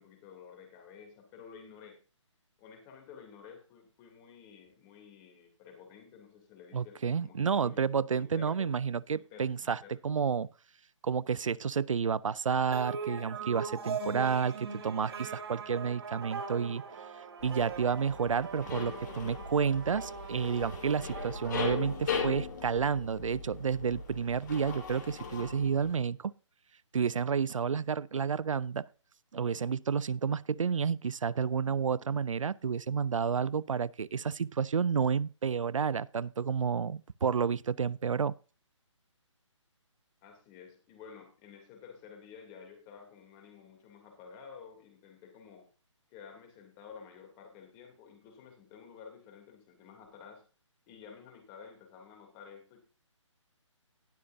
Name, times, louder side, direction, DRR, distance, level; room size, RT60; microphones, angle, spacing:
voice 1, 0.0-2.0 2.6-8.7 9.1-10.0 40.2-45.6 46.1-50.4 50.9-52.8, left 6 dB, 20° left, 3.0 m, -52 dB
voice 2, 6.7-10.5 11.0-16.8 17.4-26.3 26.9-28.9 29.3-38.3, right 6 dB, 90° right, 0.4 m, -30 dB
sound 1, 12.7-22.5, right 5 dB, 50° right, 2.0 m, -41 dB
sound 2, 17.4-26.0, left 5 dB, 35° left, 3.0 m, -39 dB
19.0 x 6.6 x 2.7 m
hypercardioid pair, 155°, 16 cm